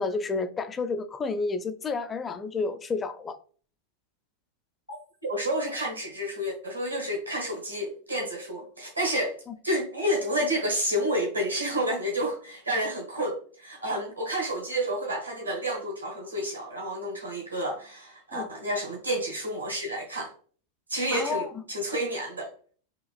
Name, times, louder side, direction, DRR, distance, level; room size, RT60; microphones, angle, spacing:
voice 1, 0.0-3.4 9.5-9.6 18.3-18.5 21.1-21.6, left 4 dB, 20° left, 0.4 m, -30 dB
voice 2, 5.2-9.3 9.6-20.3 20.9-22.5, equal, 80° right, 1.4 m, -30 dB
5.0 x 2.9 x 2.4 m
figure-of-eight pair, 90°, 0 cm